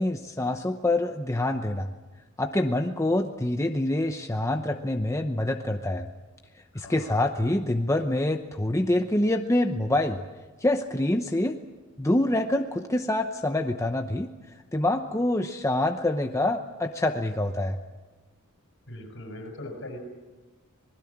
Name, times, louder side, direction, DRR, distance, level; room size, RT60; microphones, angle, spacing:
voice 1, 0.0-1.9 2.4-6.1 6.7-10.2 10.6-11.6 12.0-14.3 14.7-17.8, left 1 dB, 15° left, 5 dB, 0.8 m, -26 dB
voice 2, 6.7-7.2 18.9-20.0, left 1 dB, 60° left, 3 dB, 6.9 m, -40 dB
26.0 x 20.0 x 7.4 m, 1.2 s
head